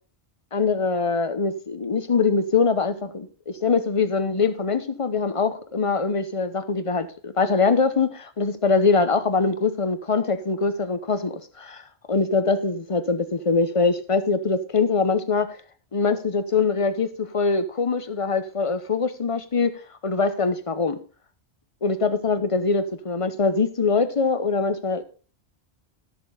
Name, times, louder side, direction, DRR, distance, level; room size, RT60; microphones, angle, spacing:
voice 1, 0.5-15.6 15.9-19.7 20.0-21.0 21.8-25.0, left 4 dB, 35° left, 0.8 m, -23 dB
13.0 x 6.7 x 3.9 m
omnidirectional pair, 1.1 m